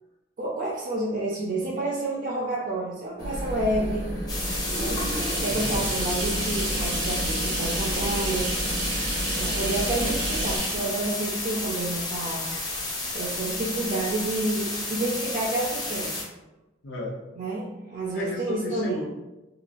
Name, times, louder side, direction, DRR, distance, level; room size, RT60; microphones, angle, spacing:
voice 1, 0.4-4.1 4.7-5.1 5.4-8.5 9.4-12.5 13.1-16.2 17.4-19.0, right 2 dB, 45° right, -4 dB, 0.4 m, -29 dB
sound 1, 3.2-10.6, right 1 dB, 55° left, 1.0 m, -32 dB
sound 2, 3.7-13.1 13.6-13.7, right 1 dB, 80° right, 1.0 m, -32 dB
sound 3, 4.3-16.2, left 2 dB, 20° left, 0.5 m, -32 dB
voice 2, 5.4-5.8 16.8-17.2 18.1-19.0, equal, 80° left, -2 dB, 0.7 m, -34 dB
2.9 x 2.3 x 2.5 m, 1.0 s
head